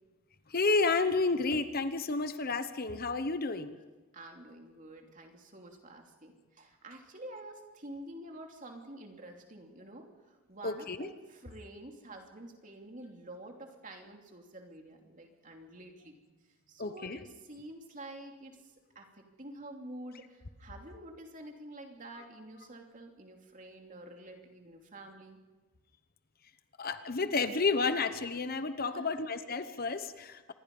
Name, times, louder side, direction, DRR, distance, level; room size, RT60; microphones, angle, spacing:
voice 1, 0.5-3.8 10.6-11.1 16.8-17.2 26.8-30.5, left 3 dB, 45° left, 11 dB, 1.0 m, -31 dB
voice 2, 4.1-16.2 16.7-18.6 18.9-25.4 28.9-29.0, right 1 dB, 35° right, 2 dB, 2.9 m, -48 dB
26.5 x 21.0 x 5.4 m, 1.2 s
head